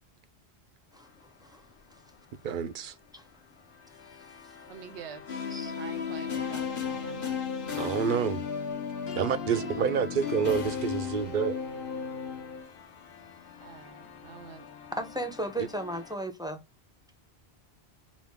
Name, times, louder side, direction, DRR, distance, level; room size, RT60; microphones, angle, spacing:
sound 1, 0.9-16.2, left 7 dB, 85° left, 1.1 m, -52 dB
voice 1, 0.9-2.0 3.1-3.3 4.4-4.5 5.5-5.8 14.9-16.6, right 1 dB, 5° right, 0.5 m, -36 dB
voice 2, 2.4-2.9 7.8-8.5 9.2-11.6 15.6-15.7, right 7 dB, 60° right, 0.6 m, -28 dB
voice 3, 4.7-5.5 5.8-7.4 13.6-14.7, right 8 dB, 90° right, 0.9 m, -46 dB
sound 2, 5.3-12.7, left 6 dB, 55° left, 1.0 m, -34 dB
5.1 x 2.3 x 3.4 m
omnidirectional pair, 1.1 m